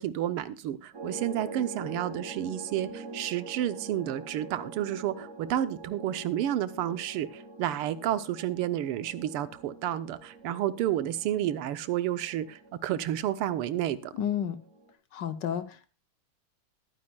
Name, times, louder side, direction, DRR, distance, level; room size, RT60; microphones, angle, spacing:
voice 1, 0.0-14.1, right 12 dB, 90° right, 1.7 m, -31 dB
sound 1, 0.9-14.9, right 2 dB, 40° right, 2.1 m, -45 dB
voice 2, 14.2-14.6 15.1-15.9, left 9 dB, 65° left, 1.3 m, -31 dB
20.0 x 9.6 x 2.3 m
omnidirectional pair, 2.4 m